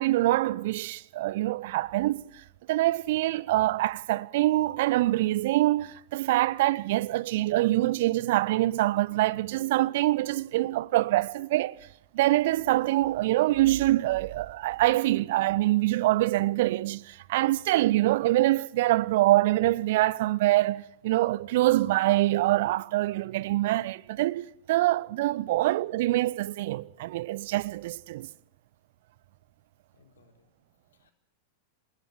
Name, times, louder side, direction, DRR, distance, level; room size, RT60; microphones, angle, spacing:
voice 1, 0.0-2.3 2.7-11.8 12.1-28.3, right 16 dB, 55° right, 0.8 m, -25 dB
voice 2, 29.9-31.1, left 4 dB, 65° left, 4.2 m, -64 dB
26.5 x 20.0 x 6.5 m
figure-of-eight pair, 90°, 0 cm